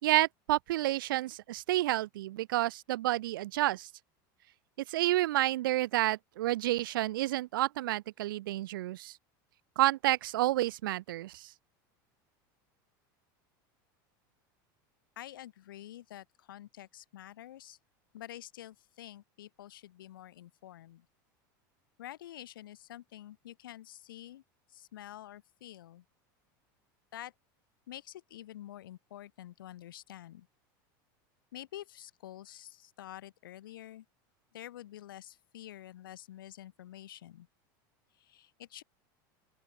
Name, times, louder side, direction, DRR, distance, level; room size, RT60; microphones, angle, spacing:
voice 1, 0.0-3.9 4.9-9.2 9.8-11.5, right 16 dB, 80° right, 2.4 m, -30 dB
voice 2, 15.1-17.8 18.1-21.0 22.0-24.4 24.7-26.0 27.1-27.3 27.9-30.5 31.5-34.0 34.5-37.5 38.1-38.8, left 13 dB, 90° left, 5.3 m, -48 dB
open air
supercardioid pair, 110°, 11 cm